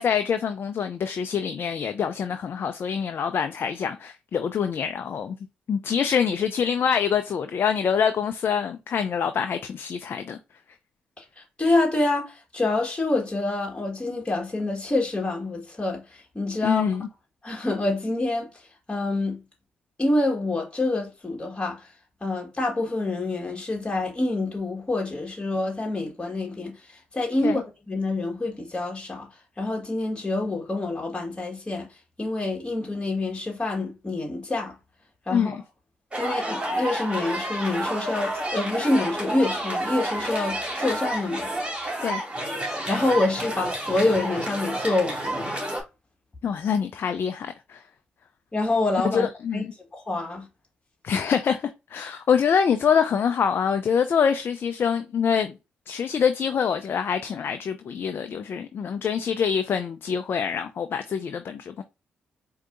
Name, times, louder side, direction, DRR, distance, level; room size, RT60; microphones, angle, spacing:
voice 1, 0.0-5.4 5.7-10.4 16.6-17.1 27.4-27.6 35.3-35.6 42.0-42.2 46.4-47.8 49.1-49.7 51.0-55.6 55.9-61.8, left 7 dB, 60° left, 0.4 m, -25 dB
voice 2, 11.2-16.9 17.4-18.6 18.9-19.4 20.0-21.9 22.2-27.6 27.9-29.3 29.6-31.9 32.2-34.7 35.3-35.5 36.2-41.5 42.9-45.5 48.5-49.6 49.9-50.5, left 2 dB, 25° left, 1.5 m, -27 dB
sound 1, 36.1-45.8, right 1 dB, 25° right, 2.3 m, -30 dB
4.6 x 2.7 x 2.5 m
supercardioid pair, 50°, 4 cm